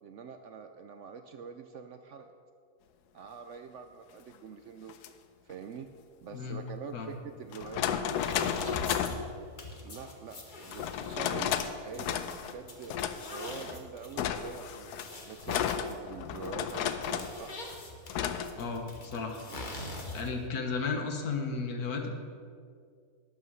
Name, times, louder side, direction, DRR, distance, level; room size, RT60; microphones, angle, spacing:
voice 1, 0.0-2.3 3.1-5.0 5.4-5.9 6.2-8.3 9.8-12.9 13.3-17.6 19.5-19.6, right 6 dB, 65° right, 7 dB, 0.8 m, -45 dB
sound 1, 4.9-5.1 6.7-6.8 7.5-9.2 10.7-11.7 12.0-12.5 12.9-13.7 14.2-17.4 18.1-18.5, left 9 dB, 85° left, 1.2 m, -33 dB
sound 2, 8.1-20.5, left 2 dB, 35° left, 1.3 m, -44 dB
voice 2, 18.6-19.4 20.1-22.1, left 4 dB, 70° left, 4 dB, 1.7 m, -34 dB
12.0 x 8.8 x 5.4 m, 2.2 s
omnidirectional pair, 1.7 m